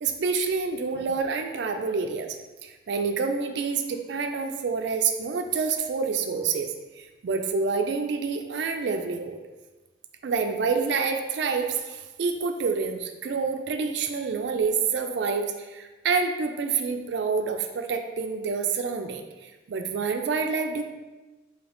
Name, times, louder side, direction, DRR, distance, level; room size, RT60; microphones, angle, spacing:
voice 1, 0.0-2.4 2.6-9.4 10.2-20.9, right 5 dB, 70° right, 5 dB, 0.4 m, -28 dB
3.4 x 2.8 x 3.8 m, 1.2 s
head